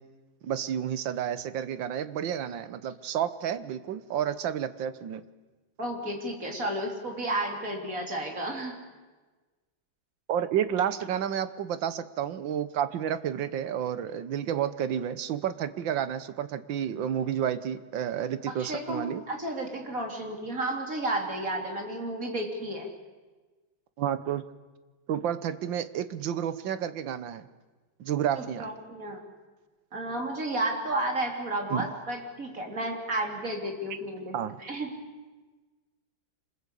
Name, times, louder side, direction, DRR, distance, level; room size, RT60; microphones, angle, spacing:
voice 1, 0.4-5.2 10.3-19.2 24.0-24.4 25.1-27.5 28.0-28.7 31.7-31.9 34.3-34.6, right 9 dB, 70° right, 13 dB, 1.7 m, -30 dB
voice 2, 5.8-8.7 18.5-22.9 28.4-29.2 29.9-34.9, right 1 dB, 40° right, 2 dB, 4.0 m, -32 dB
26.0 x 20.5 x 8.4 m, 1.3 s
omnidirectional pair, 2.2 m